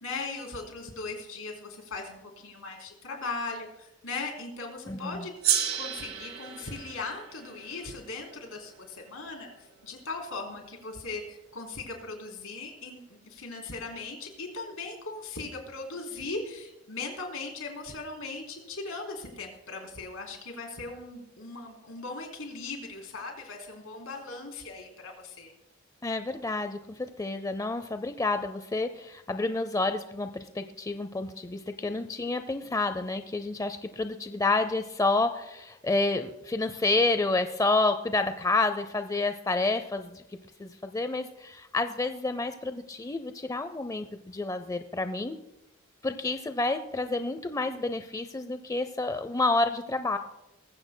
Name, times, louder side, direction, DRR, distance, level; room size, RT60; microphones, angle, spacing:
voice 1, 0.0-5.3 5.7-13.0 13.3-25.5, left 3 dB, 80° left, 1 dB, 3.4 m, -39 dB
voice 2, 4.9-5.3 26.0-40.2 40.6-45.4 46.0-50.2, left 3 dB, 15° left, 9 dB, 0.5 m, -29 dB
Gong, 5.4-10.2, right 10 dB, 85° right, 1.6 m, -33 dB
20.0 x 15.5 x 2.2 m, 0.91 s
head